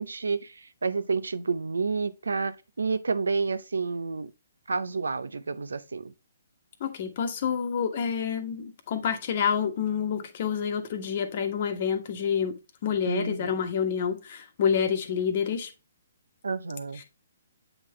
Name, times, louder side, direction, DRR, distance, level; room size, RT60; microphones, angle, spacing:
voice 1, 0.0-4.3 4.7-6.1 13.1-13.6 16.4-17.0, right 4 dB, 85° right, 0.6 m, -30 dB
voice 2, 6.8-12.6 12.8-15.7, left 7 dB, 50° left, 1.2 m, -28 dB
7.9 x 3.7 x 3.2 m
hypercardioid pair, 140°, 0 cm